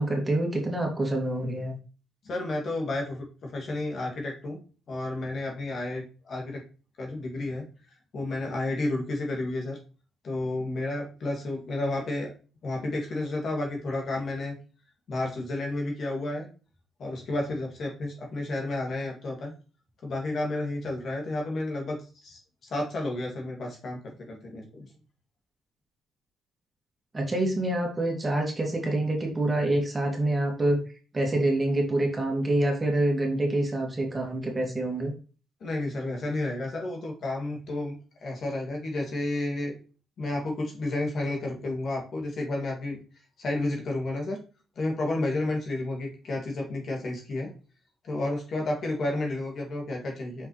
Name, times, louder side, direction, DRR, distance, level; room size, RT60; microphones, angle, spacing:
voice 1, 0.0-1.8 27.1-30.8 31.1-35.1, right 1 dB, 25° right, 1 dB, 2.3 m, -26 dB
voice 2, 2.2-4.6 4.9-6.6 7.0-7.7 8.1-9.8 10.2-12.3 12.6-14.6 15.1-16.5 17.0-19.5 20.0-22.0 22.2-24.9 35.6-39.7 40.2-43.0 43.4-44.4 44.8-47.5 48.0-50.5, left 2 dB, 55° left, 0 dB, 2.4 m, -31 dB
5.9 x 5.1 x 3.2 m, 0.35 s
cardioid pair, 90°, 0 cm